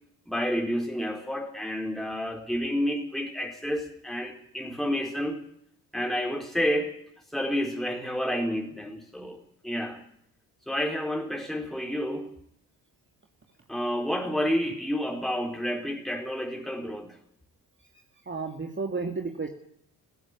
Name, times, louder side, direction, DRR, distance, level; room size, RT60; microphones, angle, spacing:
voice 1, 0.3-5.4 5.9-7.0 7.3-10.1 10.7-12.3 13.7-17.2, equal, ahead, 2 dB, 4.2 m, -30 dB
voice 2, 18.3-19.5, right 4 dB, 25° right, 4 dB, 2.4 m, -32 dB
17.0 x 16.0 x 9.8 m, 0.70 s
hypercardioid pair, 55°, 46 cm